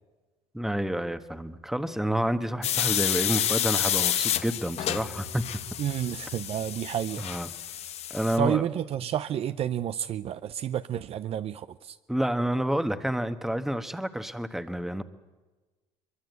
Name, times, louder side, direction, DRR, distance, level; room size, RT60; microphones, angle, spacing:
voice 1, 0.5-5.4 7.2-7.5 8.1-8.7 12.1-15.0, right 1 dB, 5° right, 10 dB, 1.3 m, -29 dB
sound 1, 2.6-8.4, left 10 dB, 55° left, 1.0 m, -29 dB
voice 2, 5.8-7.3 8.4-11.7, right 10 dB, 50° right, 12 dB, 0.7 m, -30 dB
22.5 x 22.5 x 8.1 m, 1.2 s
cardioid pair, 110°, 13 cm